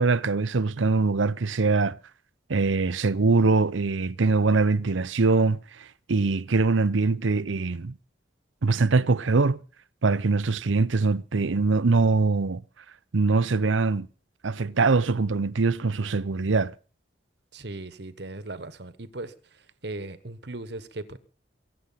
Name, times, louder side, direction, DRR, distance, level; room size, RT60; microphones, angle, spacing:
voice 1, 0.0-2.0 2.5-7.9 8.6-9.6 10.0-12.6 13.1-14.1 14.4-16.7, right 3 dB, 75° right, 0.7 m, -23 dB
voice 2, 17.5-21.2, right 2 dB, 55° right, 1.3 m, -38 dB
23.5 x 8.1 x 5.7 m
head